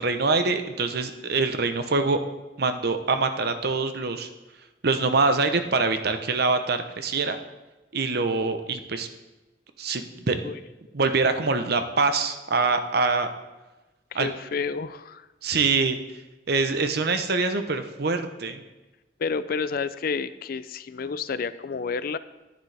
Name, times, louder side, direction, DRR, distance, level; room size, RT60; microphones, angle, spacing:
voice 1, 0.0-2.2 2.6-4.3 4.8-7.4 7.9-9.1 9.8-10.4 10.9-13.3 14.1-14.3 15.4-16.0 16.5-18.6, right 4 dB, 60° right, 8 dB, 0.8 m, -24 dB
voice 2, 14.1-15.3 19.2-22.2, left 5 dB, 55° left, 14 dB, 0.4 m, -30 dB
10.5 x 10.5 x 3.4 m, 1.1 s
head